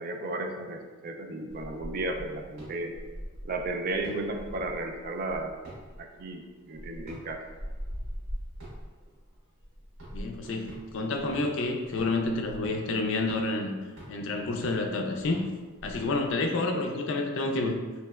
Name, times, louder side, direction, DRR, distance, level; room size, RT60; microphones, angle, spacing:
voice 1, 0.0-3.0 3.4-5.6 6.0-6.4 6.7-7.4 16.5-17.1, right 2 dB, 45° right, 3 dB, 0.3 m, -34 dB
sound 1, 1.5-16.5, equal, 75° right, 1.2 m, -43 dB
voice 2, 10.1-13.7 14.1-15.4 15.8-17.8, left 2 dB, 60° left, 3 dB, 0.4 m, -29 dB
3.1 x 2.8 x 2.3 m, 1.3 s
head